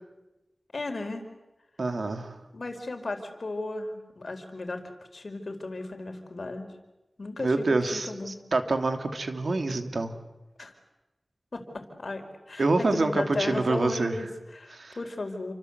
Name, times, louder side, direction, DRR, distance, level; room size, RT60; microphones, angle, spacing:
voice 1, 0.7-1.2 2.5-4.8 5.1-6.7 7.2-8.3 10.6-10.7 11.5-15.5, left 2 dB, 65° left, 5 dB, 4.6 m, -35 dB
voice 2, 1.8-2.4 7.4-10.1 12.6-14.2 14.7-15.0, right 3 dB, 75° right, 6 dB, 2.8 m, -26 dB
29.5 x 25.0 x 8.1 m, 1.0 s
wide cardioid pair, 65°, 0 cm